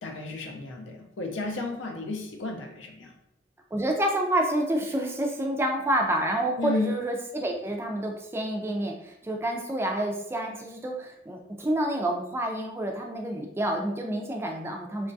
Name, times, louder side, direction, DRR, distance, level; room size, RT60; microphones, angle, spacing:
voice 1, 0.0-3.1 6.6-6.9, left 3 dB, 80° left, 2 dB, 0.5 m, -33 dB
voice 2, 3.7-15.1, right 1 dB, 15° right, 1 dB, 0.3 m, -28 dB
3.0 x 2.3 x 2.6 m, 0.80 s
head